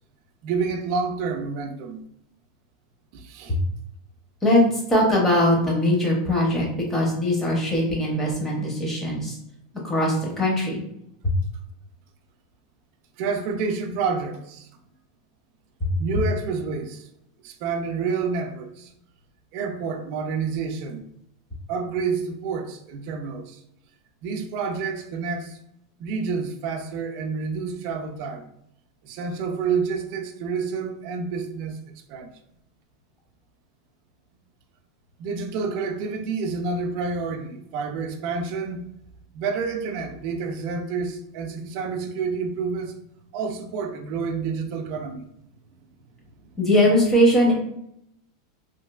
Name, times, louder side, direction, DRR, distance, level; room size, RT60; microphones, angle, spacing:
voice 1, 0.4-2.0 3.1-3.6 13.2-14.7 16.0-17.1 17.4-18.9 19.5-21.1 21.7-23.6 24.2-25.6 26.0-28.5 29.0-31.8 32.1-32.3 35.2-38.9 39.3-43.0 43.3-45.3, right 5 dB, 40° right, 0.3 m, -29 dB
voice 2, 4.9-9.4 9.8-10.8 46.6-47.5, left 1 dB, 10° left, 0.7 m, -21 dB
3.0 x 2.5 x 2.3 m
supercardioid pair, 170°, 2 cm